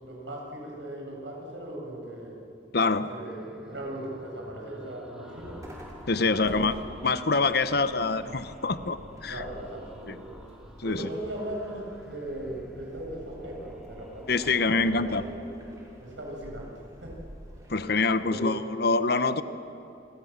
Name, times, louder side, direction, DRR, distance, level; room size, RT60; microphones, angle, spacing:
voice 1, 0.0-2.4 3.1-3.4 3.7-5.7 6.2-6.8 9.3-10.3 10.8-15.4 16.0-16.7 17.0-17.1 18.3-18.5, right 1 dB, 80° right, -1 dB, 7.9 m, -38 dB
voice 2, 2.7-3.1 6.1-6.7 7.0-9.4 10.1-10.2 10.8-11.1 14.3-15.2 17.7-19.4, left 3 dB, 60° left, 12 dB, 1.0 m, -25 dB
sound 1, 3.2-15.0, equal, 5° right, 3.1 m, -51 dB
sound 2, 5.4-18.4, equal, 20° right, 5.3 m, -48 dB
28.5 x 22.0 x 7.5 m, 2.9 s
head